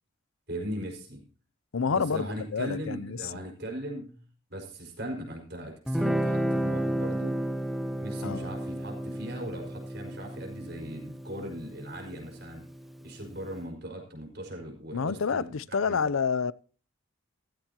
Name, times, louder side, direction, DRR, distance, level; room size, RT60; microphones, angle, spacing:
voice 1, 0.5-1.2 1.9-4.2 4.5-7.4 7.9-12.6 13.0-16.0, equal, 50° right, 5.3 m, -39 dB
voice 2, 1.7-3.5 8.2-8.5 14.9-16.5, left 5 dB, 85° left, 0.6 m, -29 dB
Guitar, 5.9-13.0, right 1 dB, ahead, 1.0 m, -32 dB
15.5 x 15.0 x 2.9 m
head